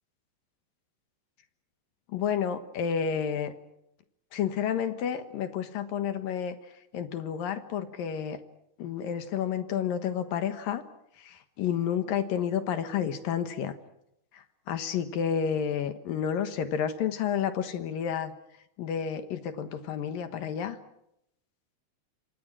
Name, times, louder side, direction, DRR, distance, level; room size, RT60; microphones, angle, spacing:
voice 1, 2.1-3.5 4.3-6.6 6.9-8.4 8.8-10.8 11.2-13.7 14.3-18.3 18.8-20.8, left 8 dB, 60° left, 9 dB, 2.5 m, -30 dB
28.5 x 26.0 x 6.2 m, 0.80 s
omnidirectional pair, 5.4 m